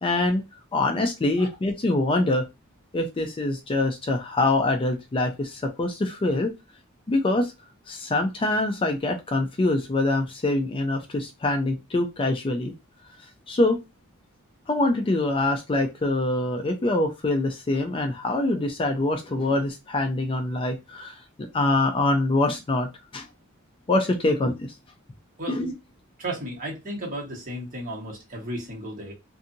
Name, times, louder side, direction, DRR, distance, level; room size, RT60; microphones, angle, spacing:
voice 1, 0.0-0.4 0.7-2.4 2.9-6.5 7.1-7.5 7.9-12.7 13.5-13.8 14.7-21.2 21.5-22.9 23.1-23.3 23.9-24.5 25.5-25.7, left 2 dB, 25° left, 0.4 m, -24 dB
voice 2, 26.2-29.1, right 1 dB, 40° right, 1.2 m, -34 dB
2.6 x 2.6 x 2.5 m
head